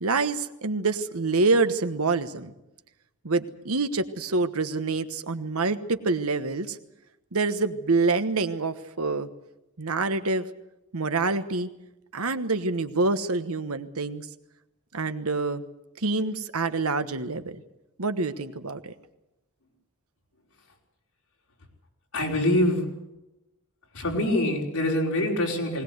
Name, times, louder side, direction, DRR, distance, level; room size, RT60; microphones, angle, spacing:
voice 1, 0.0-2.5 3.2-6.8 7.3-9.3 9.8-10.5 10.9-11.7 12.1-14.3 14.9-15.6 16.0-17.6 18.0-18.9, right 3 dB, 75° right, 10 dB, 1.2 m, -26 dB
voice 2, 22.1-22.9 23.9-25.8, left 1 dB, 80° left, -1 dB, 4.9 m, -24 dB
20.5 x 19.5 x 8.0 m, 0.94 s
head